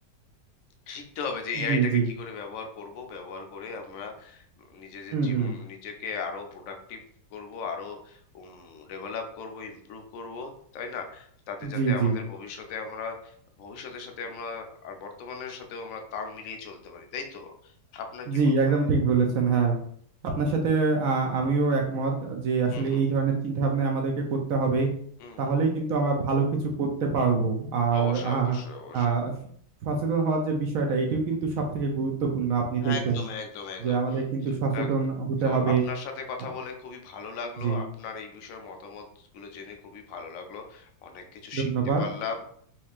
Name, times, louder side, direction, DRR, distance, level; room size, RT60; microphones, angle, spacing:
voice 1, 0.9-7.0 7.3-18.8 22.7-23.1 25.2-25.5 27.9-29.1 32.8-34.2 34.7-35.1 35.4-39.1 39.3-41.7 42.0-42.5, left 5 dB, 70° left, 4 dB, 0.7 m, -38 dB
voice 2, 1.6-2.1 5.1-5.5 11.6-12.2 18.3-19.8 20.4-24.9 25.4-26.5 26.8-28.6 28.9-29.3 29.8-33.2 33.8-35.8 37.6-37.8 41.5-42.0, right 4 dB, 75° right, 2 dB, 0.8 m, -25 dB
4.3 x 2.9 x 2.4 m, 0.63 s
omnidirectional pair, 2.0 m